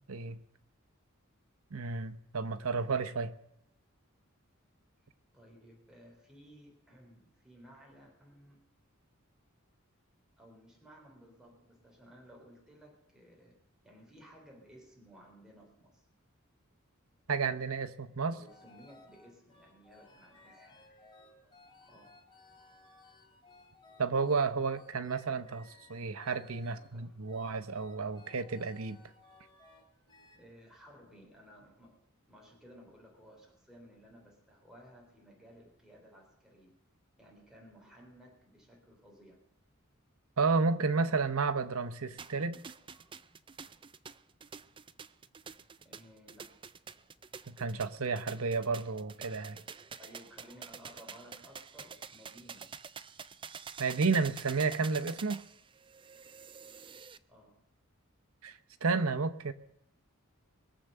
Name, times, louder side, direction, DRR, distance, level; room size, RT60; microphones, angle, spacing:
voice 1, 0.1-0.4 1.7-3.3 17.3-18.4 24.0-29.0 40.4-42.6 47.5-49.6 53.8-55.4 58.4-59.5, right 4 dB, 85° right, 10 dB, 0.9 m, -32 dB
voice 2, 5.3-8.6 10.4-13.6 13.8-16.1 18.3-21.1 21.4-21.5 21.9-22.2 26.7-27.2 30.3-32.0 32.3-36.8 37.2-39.4 42.9-43.2 45.8-46.6 50.0-52.7 57.3-57.6, equal, 5° right, -1 dB, 3.6 m, -57 dB
sound 1, 18.5-30.4, left 3 dB, 25° left, 2.7 m, -60 dB
sound 2, 42.2-57.2, right 6 dB, 25° right, 0.5 m, -48 dB
22.0 x 7.4 x 6.7 m, 0.80 s
head